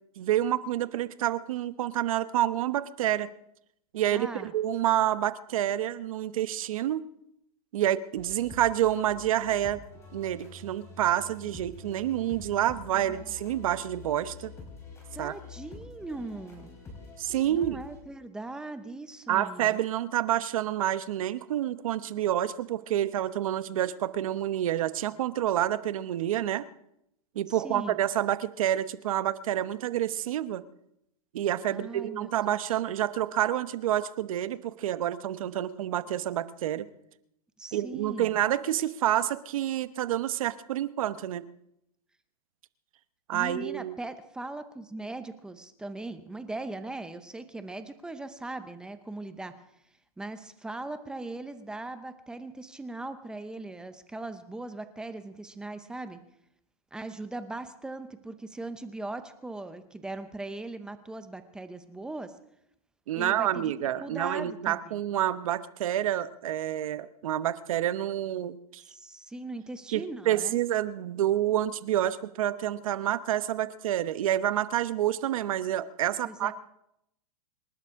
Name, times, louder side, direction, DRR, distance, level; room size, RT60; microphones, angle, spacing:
voice 1, 0.2-3.3 3.9-7.1 7.7-9.8 10.1-14.5 15.2-15.3 17.2-17.8 19.3-26.7 27.3-30.6 31.3-36.9 37.7-41.4 43.3-43.9 63.1-68.8 69.9-76.5, right 12 dB, 65° right, 13 dB, 1.0 m, -28 dB
voice 2, 4.1-4.5 12.9-13.3 15.1-16.7 17.4-19.8 27.5-28.0 31.7-32.6 37.6-38.3 43.3-49.6 50.2-56.2 56.9-62.4 63.1-65.0 68.9-70.6 76.2-76.5, right 2 dB, 5° right, 10 dB, 0.6 m, -39 dB
sound 1, 8.2-18.0, left 4 dB, 15° left, 4.3 m, -47 dB
26.5 x 11.5 x 3.7 m, 0.78 s
supercardioid pair, 160°, 19 cm